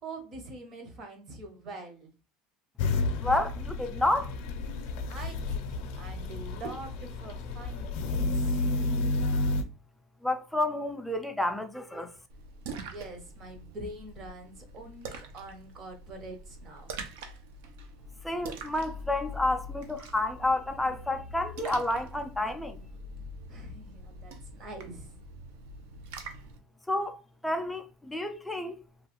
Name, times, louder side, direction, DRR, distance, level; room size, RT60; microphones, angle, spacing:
voice 1, 0.0-2.1 5.1-8.7 12.7-17.1 23.5-25.2, right 2 dB, 30° right, 0.7 m, -44 dB
sound 1, 2.8-9.6, left 2 dB, 60° left, 0.5 m, -31 dB
voice 2, 3.2-4.3 10.2-12.1 18.2-22.8 26.9-28.8, left 1 dB, ahead, 0.3 m, -30 dB
Splash splatter, 12.3-26.6, right 1 dB, 80° right, 0.6 m, -44 dB
3.0 x 2.3 x 2.9 m
cardioid pair, 170°, 0 cm